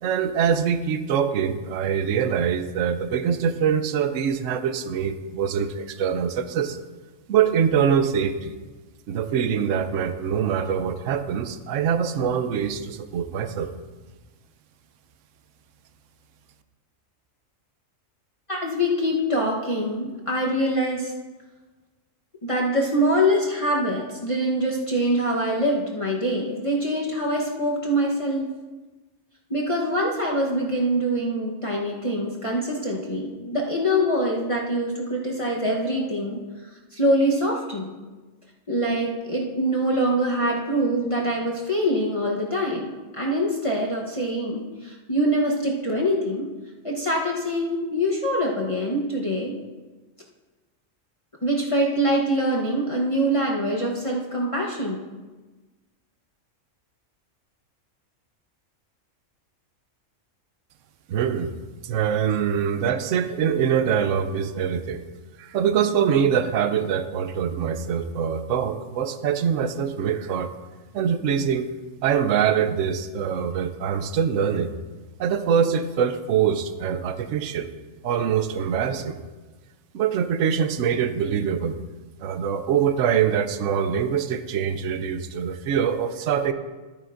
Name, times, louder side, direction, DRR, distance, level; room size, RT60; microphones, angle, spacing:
voice 1, 0.0-6.8 7.3-8.6 9.1-13.7 61.1-61.5 61.8-65.0 65.4-70.5 70.9-71.7 72.0-74.7 75.2-77.7 78.0-79.2 79.9-81.8 82.2-86.5, right 8 dB, 75° right, 10 dB, 1.0 m, -24 dB
voice 2, 18.5-21.1 22.4-28.5 29.5-37.9 38.7-46.5 46.8-49.5 51.4-55.1, equal, 25° left, -3 dB, 1.0 m, -24 dB
12.5 x 9.8 x 2.5 m, 1.2 s
omnidirectional pair, 1.4 m